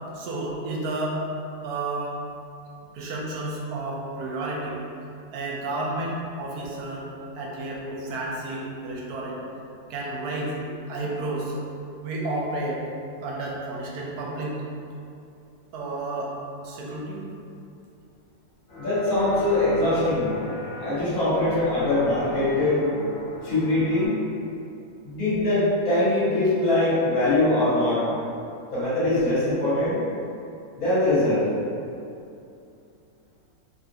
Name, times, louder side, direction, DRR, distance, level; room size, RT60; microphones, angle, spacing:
voice 1, 0.1-1.2 1.6-2.2 2.9-4.8 5.3-7.0 7.4-9.4 9.9-10.6 10.9-11.5 12.0-12.8 13.2-14.6 15.7-16.3 16.6-17.3, right 2 dB, 80° right, -3 dB, 1.1 m, -31 dB
sound 1, 18.7-24.1, left 2 dB, 35° left, 1.1 m, -38 dB
voice 2, 18.8-20.3 20.8-22.8 23.4-24.2 25.0-28.1 28.7-30.0 30.8-31.4, left 2 dB, 65° left, -11 dB, 1.7 m, -22 dB
3.3 x 2.5 x 2.7 m, 2.6 s
omnidirectional pair, 1.7 m